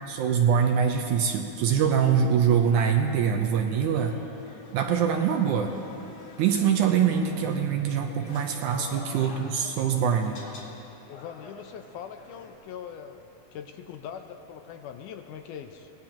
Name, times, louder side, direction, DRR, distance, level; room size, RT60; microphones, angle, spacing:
voice 1, 0.1-4.2 4.7-5.7 6.4-10.4, right 7 dB, 75° right, 4 dB, 2.0 m, -24 dB
sound 1, 3.6-12.5, left 2 dB, 55° left, 2.5 m, -48 dB
voice 2, 8.8-9.1 11.1-15.9, left 8 dB, 75° left, 6 dB, 2.0 m, -42 dB
24.5 x 18.5 x 3.0 m, 2.9 s
omnidirectional pair, 4.0 m